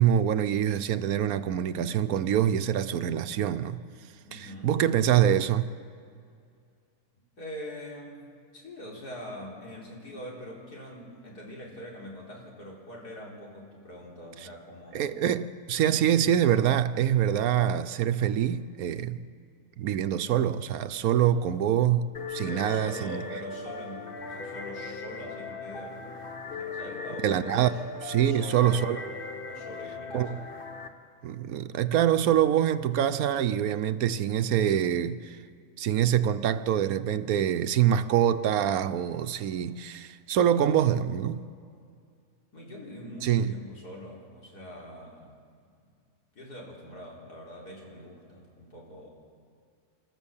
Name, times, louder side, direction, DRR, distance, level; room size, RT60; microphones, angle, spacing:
voice 1, 0.0-3.8 4.3-5.7 14.9-19.2 19.8-23.2 27.2-27.7 28.0-29.0 30.1-30.4 31.2-35.4 35.8-41.5 43.2-43.5, right 10 dB, 70° right, 1.1 m, -25 dB
voice 2, 4.2-4.7 7.4-15.1 22.4-26.2 26.5-27.8 28.2-29.0 29.5-30.5 42.5-45.4 45.8-45.9 46.3-49.1, equal, 90° left, 4.5 m, -43 dB
sound 1, 22.1-30.9, left 4 dB, 40° left, 1.2 m, -39 dB
28.5 x 13.5 x 7.2 m
omnidirectional pair, 1.6 m